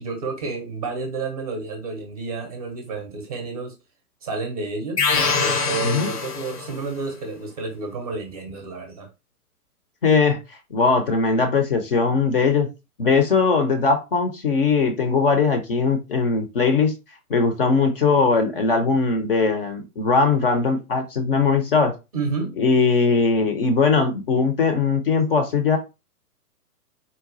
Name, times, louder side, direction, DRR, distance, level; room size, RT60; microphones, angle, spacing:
voice 1, 0.0-3.7 4.2-9.1 22.1-22.6, right 4 dB, 25° right, 0.5 m, -30 dB
sound 1, 5.0-6.9, left 4 dB, 90° left, 0.8 m, -23 dB
voice 2, 10.0-10.4 10.7-12.7 13.0-16.9 17.3-21.9 22.6-25.8, left 4 dB, 40° left, 0.4 m, -20 dB
3.9 x 2.2 x 2.4 m
figure-of-eight pair, 120°, 45 cm